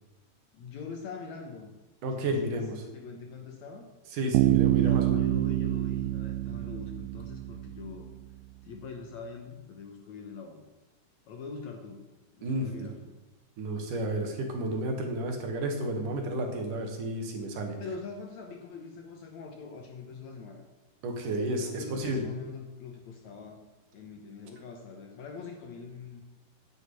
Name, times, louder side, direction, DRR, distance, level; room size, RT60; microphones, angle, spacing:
voice 1, 0.5-1.8 2.1-3.9 4.7-8.1 8.6-10.6 11.3-12.0 12.4-13.0 17.8-20.6 21.6-23.7 23.9-26.2, left 4 dB, 65° left, 3 dB, 2.0 m, -43 dB
voice 2, 2.0-2.8 4.1-5.2 12.4-12.9 13.6-17.8 21.0-22.2, right 1 dB, 65° right, 3 dB, 2.9 m, -32 dB
Bass guitar, 4.3-8.1, right 16 dB, 85° right, 2.3 m, -27 dB
10.5 x 6.6 x 8.3 m, 1.0 s
omnidirectional pair, 4.1 m